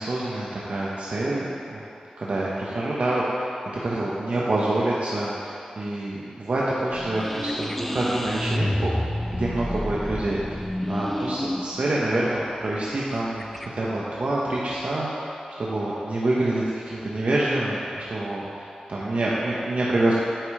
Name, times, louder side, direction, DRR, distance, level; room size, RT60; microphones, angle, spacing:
voice 1, 0.0-1.8 2.2-3.5 3.8-9.1 9.4-10.6 10.9-15.3 15.6-20.1, right 2 dB, 60° right, -6 dB, 1.0 m, -26 dB
sound 1, 6.9-13.7, left 1 dB, 10° left, 0.4 m, -30 dB
9.0 x 5.1 x 4.8 m, 2.6 s
wide cardioid pair, 75°, 2 cm